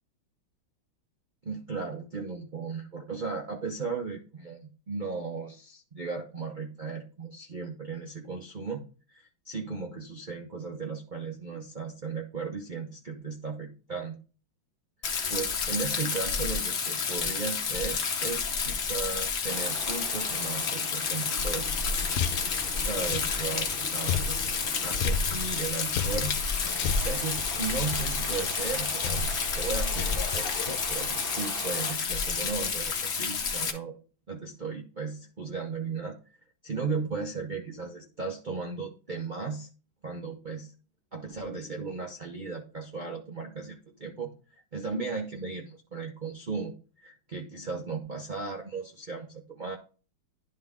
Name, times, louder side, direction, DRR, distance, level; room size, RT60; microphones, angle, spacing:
voice 1, 1.4-8.8 9.1-14.2 15.3-21.7 22.8-24.5 24.8-26.4 27.0-29.3 29.5-34.0 34.3-36.2 36.6-39.7 40.0-40.7 41.1-44.3 44.7-49.8, right 4 dB, 75° right, 1 dB, 0.4 m, -36 dB
Rain, 15.0-33.7, left 5 dB, 50° left, 0.8 m, -30 dB
sound 1, 19.5-31.9, right 4 dB, 45° right, 0.7 m, -42 dB
sound 2, 21.9-30.8, left 7 dB, 90° left, 1.5 m, -35 dB
11.0 x 3.8 x 3.6 m, 0.36 s
omnidirectional pair, 2.2 m